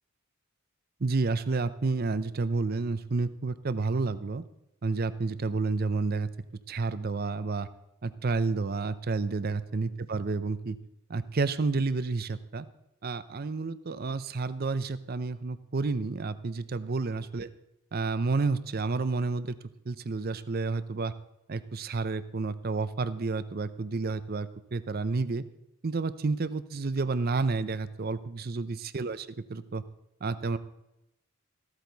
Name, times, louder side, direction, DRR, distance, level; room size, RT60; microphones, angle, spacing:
voice 1, 1.0-4.4 4.8-6.3 6.7-7.7 8.0-10.8 11.1-12.7 13.0-17.5 17.9-19.6 19.9-21.1 21.5-25.4 25.8-29.8 30.2-30.6, right 3 dB, 45° right, 14 dB, 0.6 m, -30 dB
14.5 x 13.0 x 4.0 m, 0.90 s
head